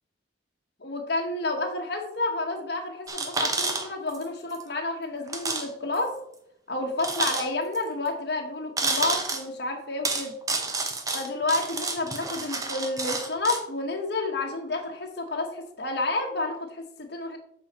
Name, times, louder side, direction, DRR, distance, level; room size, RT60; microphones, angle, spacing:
voice 1, 0.8-6.2 6.7-10.3 11.1-17.4, left 2 dB, 55° left, 2 dB, 1.1 m, -30 dB
sound 1, 3.1-4.2 4.5-4.6 5.3-5.7 5.9-6.0 7.0-7.8 8.8-9.4 10.0-13.6, right 3 dB, 20° right, 0.8 m, -29 dB
8.0 x 5.6 x 4.2 m, 0.73 s
head